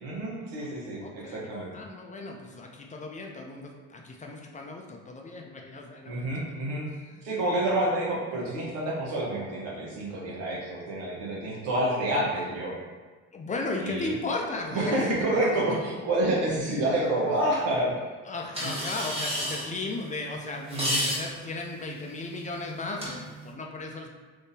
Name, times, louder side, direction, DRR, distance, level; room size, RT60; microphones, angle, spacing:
voice 1, 0.0-1.7 6.0-6.9 7.2-12.7 13.8-14.1 14.7-17.9 18.6-18.7 20.7-21.1, right 1 dB, 85° right, -4 dB, 1.1 m, -28 dB
voice 2, 1.0-6.3 7.0-7.2 13.3-15.4 18.2-24.1, left 3 dB, 25° left, 1 dB, 0.4 m, -36 dB
sound 1, 18.5-23.5, equal, 20° right, 1.2 m, -34 dB
3.6 x 2.7 x 2.7 m, 1.4 s
supercardioid pair, 90°, 32 cm